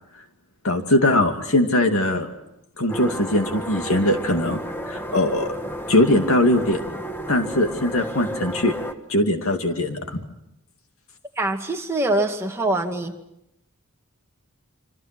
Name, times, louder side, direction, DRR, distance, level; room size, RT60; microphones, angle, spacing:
voice 1, 0.6-2.3 2.8-4.6 4.9-5.5 5.9-6.8 7.3-8.7 9.1-10.2, left 1 dB, 65° left, 5 dB, 2.5 m, -21 dB
sound 1, 2.9-8.9, equal, 10° left, 1.3 m, -32 dB
voice 2, 11.4-13.1, right 2 dB, 10° right, 2 dB, 2.1 m, -24 dB
27.0 x 26.0 x 6.1 m, 0.84 s
head